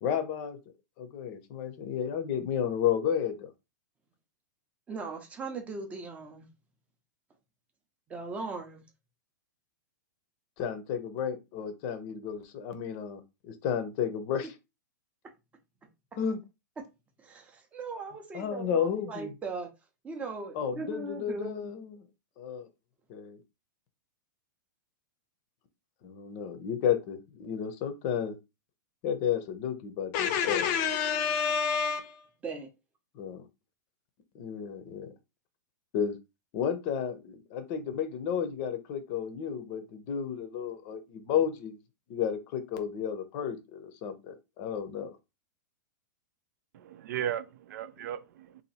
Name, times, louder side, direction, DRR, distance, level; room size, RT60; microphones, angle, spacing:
voice 1, 0.0-0.6 1.0-3.5 10.6-14.5 16.2-16.4 18.3-19.3 20.5-22.0 22.4-22.7 23.1-23.4 26.0-28.4 29.0-32.3 33.1-33.5 34.3-35.1 35.9-36.2 36.5-41.8 42.1-45.2, left 8 dB, 35° left, 0.7 m, -32 dB
voice 2, 4.9-6.5 8.1-8.8 17.2-19.7 20.0-21.7 32.4-32.7, right 4 dB, 15° right, 0.7 m, -39 dB
voice 3, 46.7-48.6, right 10 dB, 60° right, 0.5 m, -36 dB
2.8 x 2.6 x 4.1 m
supercardioid pair, 155°, 11 cm